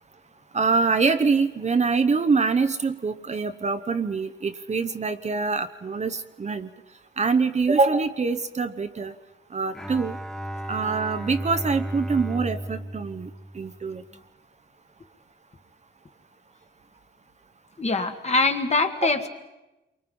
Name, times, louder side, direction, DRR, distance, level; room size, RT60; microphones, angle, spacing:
voice 1, 0.5-6.7 7.2-9.1 9.5-10.2 10.7-13.3 13.5-14.0, right 4 dB, 35° right, 9 dB, 0.9 m, -24 dB
Bowed string instrument, 9.7-14.2, equal, 5° left, 0.7 m, -34 dB
voice 2, 17.8-19.3, left 3 dB, 35° left, 6 dB, 1.8 m, -23 dB
29.0 x 24.0 x 5.4 m, 1.0 s
wide cardioid pair, 120°, 19 cm